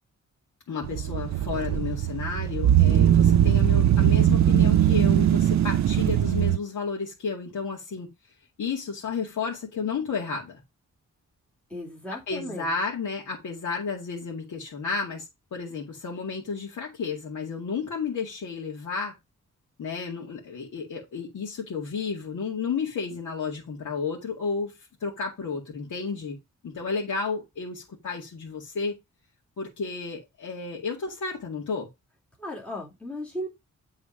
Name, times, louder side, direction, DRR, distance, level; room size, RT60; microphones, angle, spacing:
voice 1, 0.7-8.1 8.6-10.6 12.1-19.2 19.8-26.4 26.6-28.9 29.6-31.9, left 5 dB, 75° left, 2.1 m, -32 dB
sound 1, 0.8-6.6, right 11 dB, 65° right, 0.5 m, -20 dB
voice 2, 11.7-12.7 32.4-33.5, left 1 dB, 5° left, 2.6 m, -36 dB
8.9 x 3.9 x 5.1 m
wide cardioid pair, 170°, 30 cm